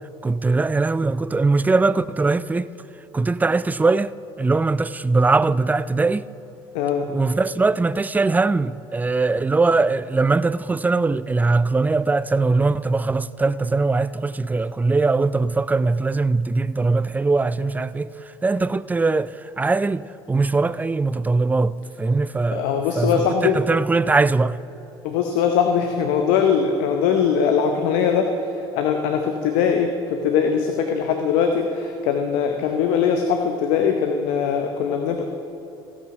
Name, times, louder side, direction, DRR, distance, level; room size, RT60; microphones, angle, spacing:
voice 1, 0.2-2.7 3.1-6.3 7.1-24.6, right 3 dB, 15° right, 0.3 m, -21 dB
voice 2, 6.7-7.1 22.5-23.6 25.0-35.3, left 7 dB, 70° left, 0.8 m, -21 dB
16.0 x 6.2 x 5.9 m
hypercardioid pair, 70°, 13 cm